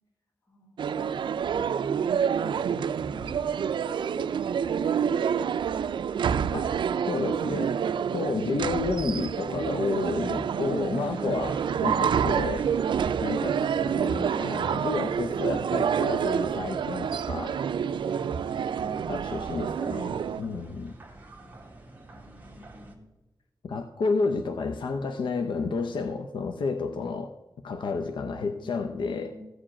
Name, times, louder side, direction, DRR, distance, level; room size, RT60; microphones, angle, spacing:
voice 1, 0.5-2.8 3.1-4.5 20.1-20.7 22.1-23.0 28.5-29.4, left 1 dB, 40° left, -3 dB, 4.5 m, -51 dB
sound 1, 0.8-20.4, right 7 dB, 90° right, 0.4 m, -28 dB
voice 2, 6.5-7.8 8.1-12.7 13.2-17.6 19.1-20.9 23.6-27.3 27.6-29.3, left 4 dB, 90° left, 6 dB, 0.7 m, -31 dB
sound 2, 9.6-23.0, right 1 dB, 20° right, 1.7 m, -49 dB
14.5 x 4.9 x 8.6 m, 1.1 s
wide cardioid pair, 170°, 8 cm